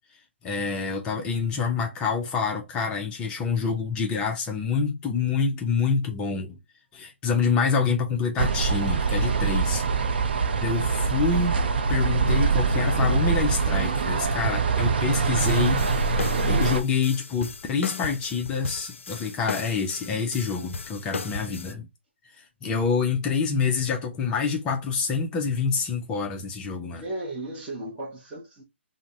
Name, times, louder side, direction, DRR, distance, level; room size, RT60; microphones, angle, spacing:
voice 1, 0.4-6.5 6.9-9.8 10.6-11.6 11.9-15.8 16.4-21.9 22.3-27.0, left 5 dB, 15° left, 0.4 m, -27 dB
sound 1, 8.4-16.8, right 4 dB, 55° right, 0.4 m, -23 dB
sound 2, 15.4-21.7, left 5 dB, 85° left, 0.3 m, -37 dB
voice 2, 26.9-28.6, right 1 dB, 15° right, 0.8 m, -35 dB
2.5 x 2.0 x 3.3 m
hypercardioid pair, 155°, 7 cm